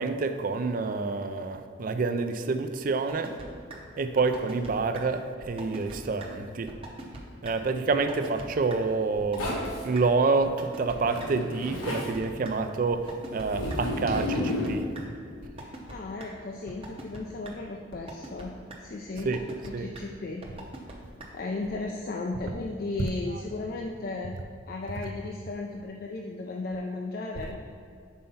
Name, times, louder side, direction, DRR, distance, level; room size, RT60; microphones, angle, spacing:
voice 1, 0.0-3.4 4.0-6.7 7.4-14.9 19.2-19.4 19.7-19.9 23.0-23.4, right 4 dB, 40° right, 8 dB, 0.3 m, -28 dB
sound 1, 3.1-3.5 3.7-3.8 4.2-4.7 4.9-5.0 5.4-6.0 6.2-6.3 6.7-7.2 7.4-7.5 7.9-8.4 8.7-8.8 9.2-9.7 10.0-10.1 10.4-10.9 11.2-11.3 11.7-12.5 12.9-13.8 14.2-14.7 14.9-15.0 15.4-15.9 16.2-16.3 16.7-17.2 17.4-17.5 17.9-18.4 18.7-18.8 19.2-19.7 19.9-20.0 20.4-20.9 21.2-21.3 21.7-21.8, right 2 dB, 25° right, 0.7 m, -41 dB
Zipper (clothing), 9.4-9.8 11.0-12.1 13.5-14.7, left 1 dB, 90° left, 1.2 m, -31 dB
voice 2, 15.6-18.5 18.8-20.5 21.3-24.4 24.7-27.6, left 3 dB, 45° left, 1 dB, 0.4 m, -35 dB
5.5 x 4.4 x 5.5 m, 2.3 s
head